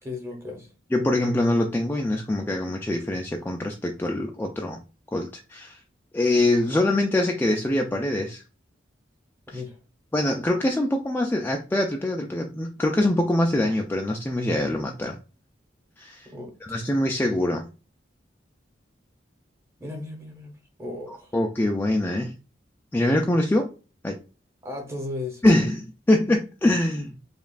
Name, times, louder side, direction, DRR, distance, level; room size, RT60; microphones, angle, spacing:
voice 1, 0.0-0.7 9.5-9.8 16.2-16.6 19.8-20.5 20.8-21.3 24.6-25.5, left 2 dB, 15° right, 0.9 m, -35 dB
voice 2, 0.9-4.8 5.1-5.8 6.1-8.4 9.5-9.6 10.1-15.2 16.0-16.3 16.6-17.6 21.1-22.3 22.9-23.7 24.0-24.2 25.4-27.1, left 1 dB, 10° left, 0.3 m, -24 dB
5.2 x 2.4 x 2.4 m
head